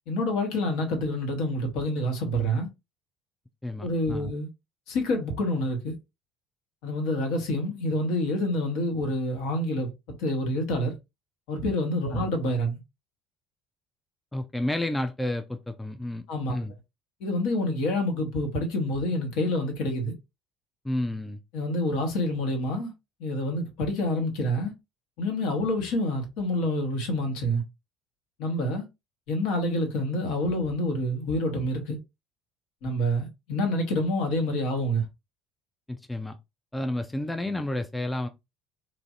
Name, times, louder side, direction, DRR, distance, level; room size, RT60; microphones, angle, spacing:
voice 1, 0.1-2.7 3.8-4.5 4.9-5.9 6.8-9.9 10.2-10.9 11.5-12.8 16.3-16.6 17.2-20.1 21.5-22.9 23.2-24.7 25.2-27.6 28.4-28.8 29.3-32.0 32.8-35.0, left 1 dB, 60° left, 0.9 m, -27 dB
voice 2, 3.6-4.3 12.1-12.3 14.3-16.7 20.8-21.4 35.9-36.4 36.7-38.3, left 1 dB, 10° left, 0.3 m, -31 dB
3.1 x 2.5 x 2.4 m
figure-of-eight pair, 60°, 0 cm